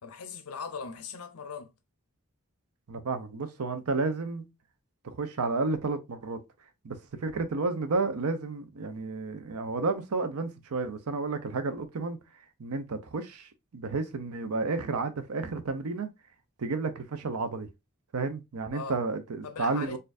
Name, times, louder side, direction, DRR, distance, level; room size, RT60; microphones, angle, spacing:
voice 1, 0.0-1.7 18.7-19.0 19.4-20.0, left 5 dB, 90° left, 0.6 m, -39 dB
voice 2, 2.9-4.4 5.0-6.4 6.8-12.2 12.6-16.1 16.6-17.7 18.1-20.0, right 3 dB, 85° right, 0.6 m, -31 dB
4.2 x 2.6 x 2.5 m
head